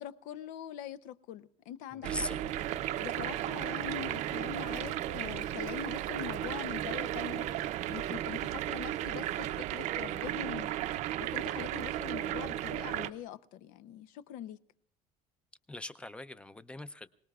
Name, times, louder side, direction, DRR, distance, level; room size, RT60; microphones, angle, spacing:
voice 1, 0.0-2.3 3.0-10.8 11.2-14.6, left 10 dB, 80° left, 0.7 m, -43 dB
sound 1, 2.0-13.1, right 12 dB, 60° right, 0.6 m, -35 dB
voice 2, 2.1-2.7 15.7-17.1, left 2 dB, 10° left, 0.5 m, -41 dB
sound 2, 2.5-8.6, right 5 dB, 30° right, 0.8 m, -53 dB
26.5 x 19.0 x 2.4 m
cardioid pair, 160°, 13 cm